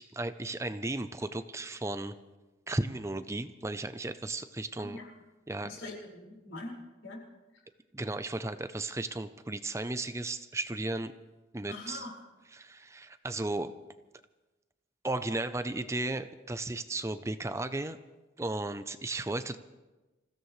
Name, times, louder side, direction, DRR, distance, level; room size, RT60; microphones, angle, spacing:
voice 1, 0.0-2.1 2.7-5.0 5.5-5.7 7.9-11.1 11.5-12.1 12.5-13.7 15.0-18.0 18.4-19.6, right 2 dB, 15° right, 11 dB, 0.5 m, -35 dB
voice 2, 4.8-5.1 5.6-6.7 7.0-7.2 11.7-12.1, left 2 dB, 85° left, -3 dB, 5.0 m, -42 dB
27.5 x 16.0 x 3.2 m, 1.1 s
head